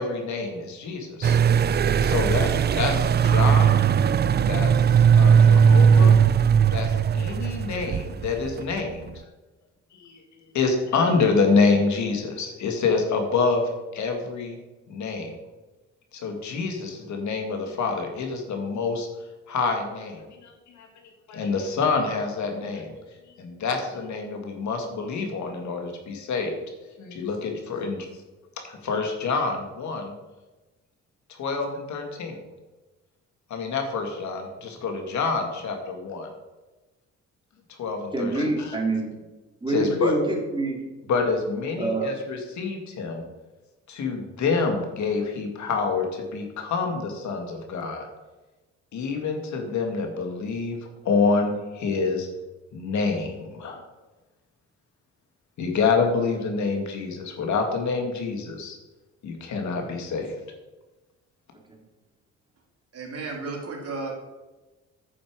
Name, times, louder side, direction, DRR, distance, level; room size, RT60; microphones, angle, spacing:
voice 1, 0.0-1.4 2.0-3.8 4.4-6.2 6.7-9.1 10.0-10.2 10.5-13.6 13.9-14.6 14.9-15.3 16.1-19.1 19.5-20.9 21.3-23.0 23.4-26.5 27.0-28.1 28.7-30.1 31.3-32.4 33.5-36.3 37.8-38.8 39.7-40.1 41.1-43.2 43.9-48.1 48.9-50.8 51.0-52.3 52.7-53.8 55.6-58.8 59.2-60.4, left 4 dB, 70° left, 3 dB, 2.1 m, -27 dB
sound 1, 1.2-8.8, right 7 dB, 35° right, 0.4 m, -18 dB
voice 2, 38.1-39.2 39.6-40.8 41.8-42.1, right 2 dB, 15° right, 0 dB, 2.8 m, -26 dB
voice 3, 62.9-64.1, right 3 dB, 55° right, 0 dB, 3.0 m, -33 dB
9.8 x 7.3 x 4.8 m, 1.1 s
cardioid pair, 90°, 30 cm